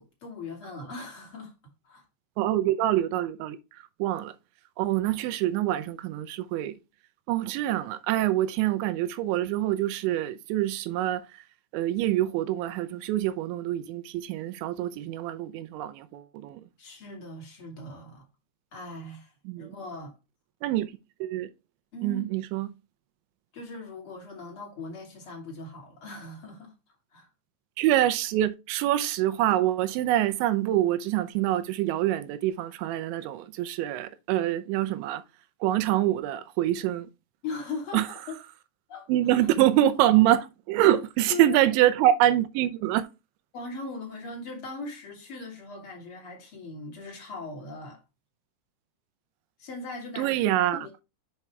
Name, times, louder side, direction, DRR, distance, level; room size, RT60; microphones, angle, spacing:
voice 1, 0.0-1.5 1.8-2.0 16.8-18.3 18.7-20.1 21.9-22.2 23.5-26.7 27.1-27.3 37.4-38.4 38.9-39.1 39.4-39.5 40.8-41.0 41.3-41.8 43.5-48.0 49.6-50.4 50.7-51.0, left 3 dB, 35° left, 2.7 m, -39 dB
voice 2, 2.4-3.6 4.0-4.3 4.8-6.8 7.3-11.2 11.7-16.6 19.5-19.8 20.6-20.9 21.2-21.5 22.0-22.7 27.8-35.2 35.6-37.1 37.9-38.1 39.1-43.1 50.2-50.9, right 13 dB, 85° right, 3.0 m, -25 dB
7.3 x 6.0 x 3.3 m
omnidirectional pair, 5.2 m